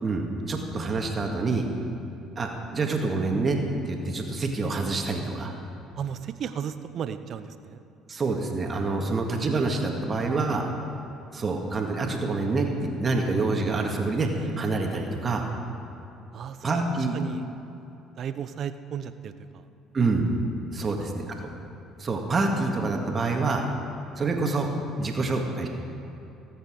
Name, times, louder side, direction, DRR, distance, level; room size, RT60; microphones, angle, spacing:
voice 1, 0.0-1.7 2.4-3.6 3.9-5.5 8.1-10.7 11.3-15.4 16.6-17.2 19.9-20.3 20.7-21.2 22.0-23.7 24.2-24.7 25.0-25.7, right 3 dB, 35° right, 2 dB, 2.0 m, -26 dB
voice 2, 6.0-7.8 16.3-17.5 18.2-19.7 20.8-21.1, right 8 dB, 55° right, 11 dB, 0.8 m, -35 dB
17.5 x 8.3 x 6.4 m, 2.9 s
supercardioid pair, 70°, 0 cm